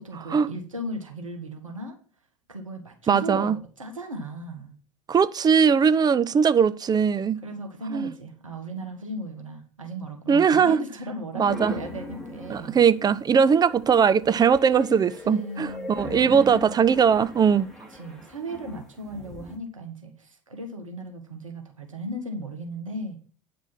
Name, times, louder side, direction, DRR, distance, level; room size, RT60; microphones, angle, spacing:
voice 1, 0.0-2.0 2.5-4.8 7.4-12.8 15.2-16.6 17.9-23.2, right 1 dB, 90° right, 1.5 m, -36 dB
voice 2, 3.1-3.6 5.1-7.4 7.9-8.1 10.3-10.8 11.4-11.7 12.5-17.7, right 6 dB, 25° right, 0.6 m, -20 dB
sound 1, 11.5-19.6, left 1 dB, ahead, 2.8 m, -40 dB
9.1 x 5.2 x 5.9 m
figure-of-eight pair, 70°, 16 cm